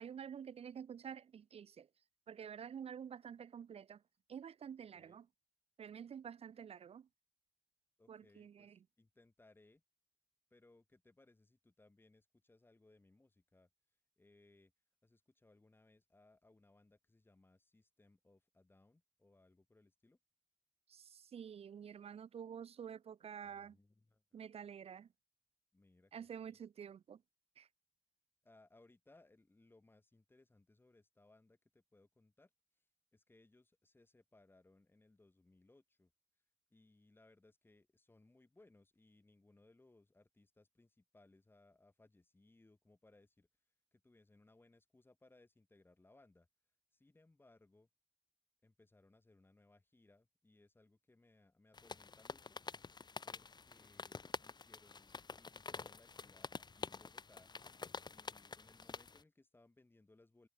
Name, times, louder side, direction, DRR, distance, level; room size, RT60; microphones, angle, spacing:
voice 1, 0.0-1.9 2.3-4.0 4.3-5.3 5.8-7.1 8.1-8.8 20.9-23.8 24.3-25.1 26.1-27.2 27.6-27.7, right 8 dB, 65° right, 0.5 m, -49 dB
voice 2, 8.0-9.8 10.5-13.7 14.2-14.7 15.0-20.2 23.4-24.4 25.7-26.6 28.4-32.5 33.1-36.1 36.7-43.5 43.9-46.5 46.9-47.9 48.6-52.6 53.2-57.5 58.1-60.5, left 2 dB, 20° left, 4.9 m, -68 dB
sound 1, 51.7-59.2, left 4 dB, 40° left, 1.5 m, -48 dB
wide cardioid pair, 160°, 11 cm